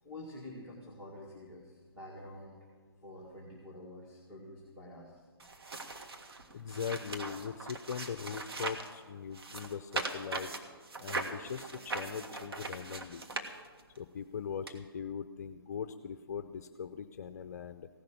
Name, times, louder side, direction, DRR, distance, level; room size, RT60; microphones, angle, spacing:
voice 1, 0.0-2.6 3.0-5.3, left 1 dB, 5° right, -6 dB, 1.9 m, -48 dB
sound 1, 5.4-8.9 9.3-14.0 14.7-14.8, right 3 dB, 75° right, 1.8 m, -40 dB
voice 2, 6.5-10.5 11.0-13.2 14.0-17.9, left 7 dB, 40° left, 10 dB, 0.5 m, -40 dB
16.5 x 6.6 x 9.7 m, 1.5 s
hypercardioid pair, 155°, 13 cm